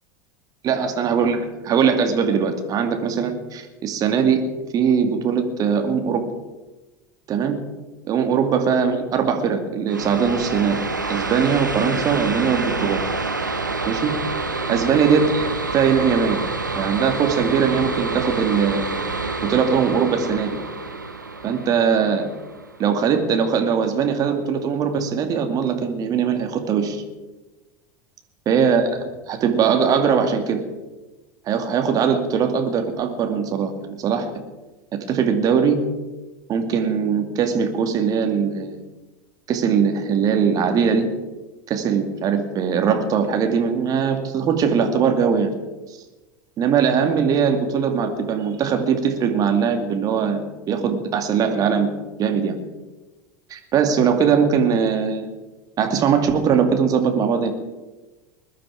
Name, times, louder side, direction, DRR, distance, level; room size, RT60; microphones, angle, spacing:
voice 1, 0.6-4.4 4.7-6.3 7.3-7.6 8.0-10.8 11.1-13.0 13.8-14.1 14.7-16.4 16.7-18.9 19.4-20.6 21.4-22.3 22.8-27.0 28.5-30.6 31.5-34.3 35.1-35.8 36.5-38.8 39.5-41.1 41.7-45.5 46.6-51.9 52.2-52.5 53.5-55.3 55.8-57.5, right 6 dB, 40° right, 6 dB, 2.3 m, -21 dB
sound 1, 9.9-23.3, right 3 dB, 90° right, 1.1 m, -27 dB
21.0 x 12.0 x 4.9 m, 1.1 s
figure-of-eight pair, 80°, 10 cm